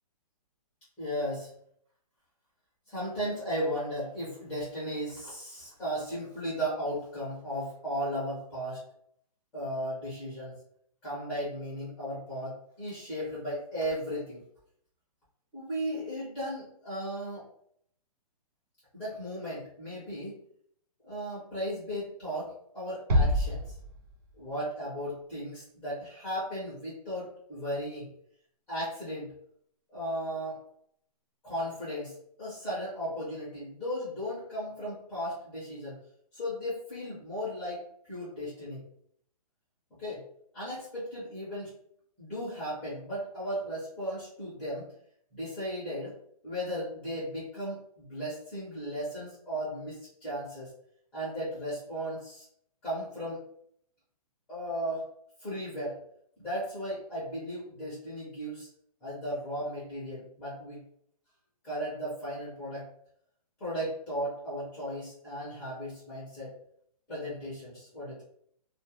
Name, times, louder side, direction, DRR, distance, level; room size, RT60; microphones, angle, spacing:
voice 1, 1.0-1.5 2.9-8.8 9.5-10.6 11.0-14.4 15.5-17.5 18.9-20.4 21.0-23.7 24.4-28.1 28.7-29.3 29.9-30.6 31.4-36.0 36.3-37.8 38.1-38.8 40.0-40.2 40.5-41.7 42.2-44.9 45.3-46.1 46.4-50.7 51.1-52.4 52.8-53.4 54.5-55.0 55.4-56.0 56.4-58.7 59.0-60.8 61.6-62.8 63.6-66.5 67.1-68.2, equal, 5° left, -10 dB, 0.5 m, -36 dB
Bass drum, 23.1-24.5, left 1 dB, 90° right, 0.7 m, -27 dB
2.3 x 2.1 x 2.8 m, 0.68 s
hypercardioid pair, 175°, 20 cm